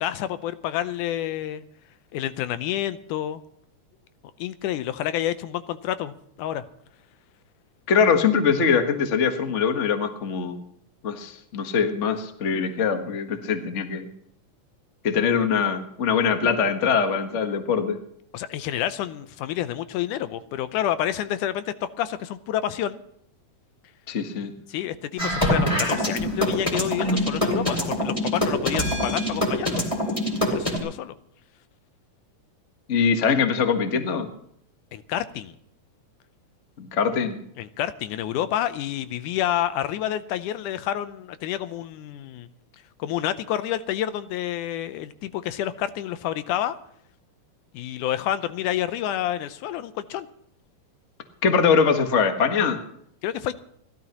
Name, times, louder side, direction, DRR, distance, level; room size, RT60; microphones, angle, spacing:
voice 1, 0.0-1.6 2.1-3.4 4.4-6.7 18.3-23.0 24.7-29.8 30.5-31.1 34.9-35.6 37.6-42.5 43.0-46.8 47.7-50.3 53.2-53.6, left 11 dB, 85° left, 12 dB, 2.3 m, -29 dB
voice 2, 7.9-10.6 11.0-14.1 15.0-18.0 24.1-24.5 32.9-34.3 36.8-37.4 51.4-52.8, left 6 dB, 55° left, 6 dB, 0.8 m, -22 dB
sound 1, 25.2-30.8, left 1 dB, 10° left, 2.4 m, -24 dB
30.0 x 12.5 x 3.0 m, 0.70 s
omnidirectional pair, 3.5 m